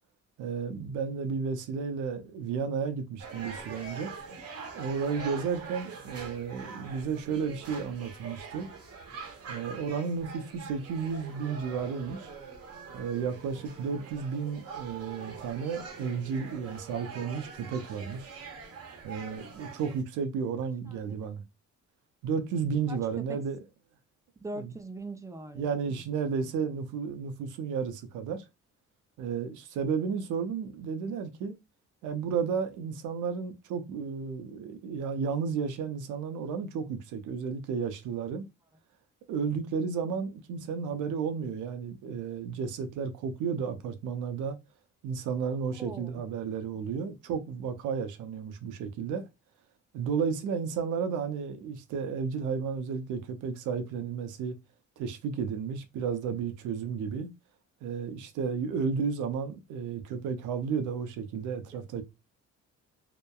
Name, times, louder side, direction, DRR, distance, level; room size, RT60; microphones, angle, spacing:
voice 1, 0.4-4.1 4.7-8.7 9.5-12.3 12.9-18.3 19.0-21.4 22.2-23.6 24.5-24.7 25.5-28.4 29.2-31.5 32.0-38.5 39.3-44.6 45.0-49.3 49.9-54.6 55.0-57.3 57.8-62.0, right 6 dB, 85° right, 0.6 m, -33 dB
sound 1, 3.2-20.0, right 5 dB, 55° right, 0.8 m, -44 dB
voice 2, 20.9-21.3 22.9-23.4 24.4-26.0 26.4-26.5 45.8-46.2 61.7-61.8, right 2 dB, 10° right, 0.3 m, -42 dB
2.9 x 2.1 x 2.2 m
cardioid pair, 90°, 30 cm